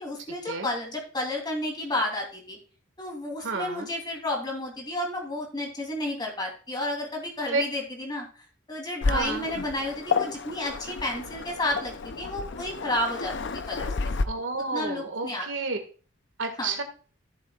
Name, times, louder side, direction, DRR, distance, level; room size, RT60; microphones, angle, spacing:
voice 1, 0.0-2.6 3.0-8.2 8.7-13.3 13.7-13.9 14.2-14.3 14.7-15.5 16.6-16.8, left 1 dB, 20° left, 0 dB, 3.0 m, -31 dB
voice 2, 3.4-3.9 7.5-7.6 9.1-9.4 14.3-15.8 16.4-16.8, right 3 dB, 70° right, 5 dB, 1.8 m, -30 dB
Waves surf, 9.0-14.2, left 4 dB, 60° left, 0.6 m, -31 dB
14.5 x 7.4 x 2.4 m, 0.37 s
head